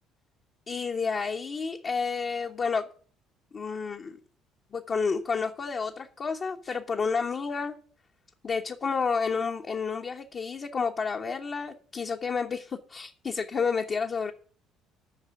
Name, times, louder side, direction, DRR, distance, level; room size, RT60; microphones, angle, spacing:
voice 1, 0.7-2.8 3.5-4.2 4.7-7.8 8.4-14.3, left 5 dB, 40° left, 1.2 m, -30 dB
11.0 x 6.6 x 8.6 m
figure-of-eight pair, 50°, 0 cm